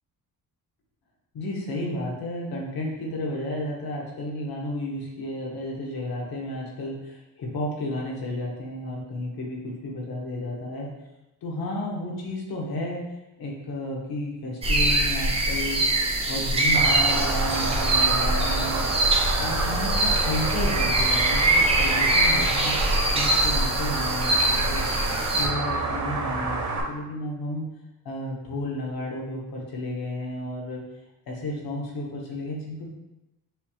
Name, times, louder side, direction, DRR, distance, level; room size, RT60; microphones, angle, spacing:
voice 1, 1.3-10.9 11.4-13.0 13.4-15.8 16.3-18.9 19.4-22.8 23.1-24.9 25.2-27.7 28.0-30.8 31.3-32.9, left 1 dB, 75° left, -2 dB, 1.2 m, -32 dB
sound 1, 14.6-25.5, right 2 dB, 15° right, 0.4 m, -23 dB
sound 2, 16.7-26.8, right 3 dB, 50° right, 0.8 m, -29 dB
6.7 x 2.4 x 3.1 m, 0.98 s
wide cardioid pair, 180°, 37 cm